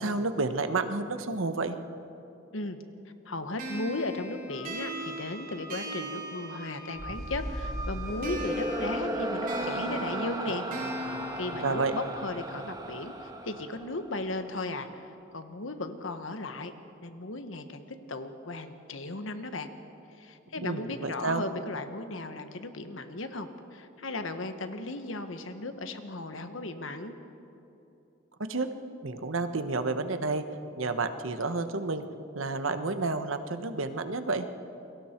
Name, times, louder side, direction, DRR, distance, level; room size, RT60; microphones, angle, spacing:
voice 1, 0.0-1.7 11.6-12.0 20.6-21.4 28.4-28.7 29.0-30.4 30.8-32.0 32.3-34.5, right 3 dB, 85° right, 9 dB, 1.2 m, -30 dB
voice 2, 3.2-10.6 10.9-16.7 17.0-17.8 18.1-19.7 20.2-27.1, left 2 dB, 75° left, 8 dB, 1.4 m, -36 dB
sound 1, 3.6-7.2 8.2-12.2, right 1 dB, 45° right, 5.1 m, -39 dB
Wind instrument woodwind instrument, 4.5-8.8, right 1 dB, 60° left, 5.7 m, -44 dB
sound 2, 7.0-14.3, right 1 dB, 20° right, 1.4 m, -35 dB
29.0 x 22.5 x 4.6 m, 2.9 s
head